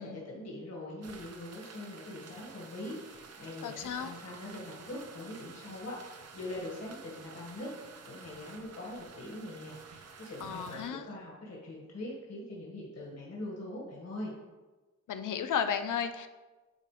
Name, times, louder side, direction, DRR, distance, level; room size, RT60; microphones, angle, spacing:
voice 1, 0.0-7.7 8.1-14.3, left 1 dB, 50° left, -4 dB, 1.8 m, -42 dB
sound 1, 1.0-10.9, right 5 dB, 50° right, 0.7 m, -51 dB
voice 2, 3.6-4.1 10.4-11.1 15.1-16.3, left 7 dB, 70° left, 9 dB, 0.5 m, -33 dB
9.8 x 4.5 x 3.3 m, 1.2 s
wide cardioid pair, 175°, 32 cm